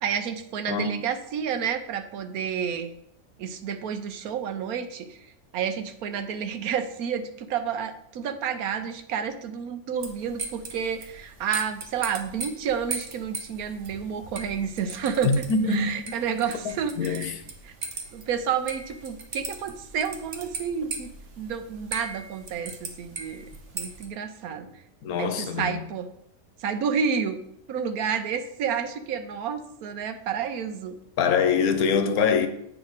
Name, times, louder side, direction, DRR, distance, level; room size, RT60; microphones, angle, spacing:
voice 1, 0.0-2.9 3.4-17.3 17.6-17.7 18.1-21.1 21.4-23.5 23.7-24.7 25.2-26.1 26.6-27.4 27.7-31.0, right 7 dB, 85° right, 1.2 m, -30 dB
voice 2, 0.7-1.0 15.2-15.9 16.6-17.4 25.0-25.9 31.2-32.5, left 5 dB, 85° left, 1.2 m, -24 dB
sound 1, 10.0-24.1, right 4 dB, 60° right, 1.3 m, -39 dB
8.1 x 4.9 x 4.0 m
omnidirectional pair, 1.5 m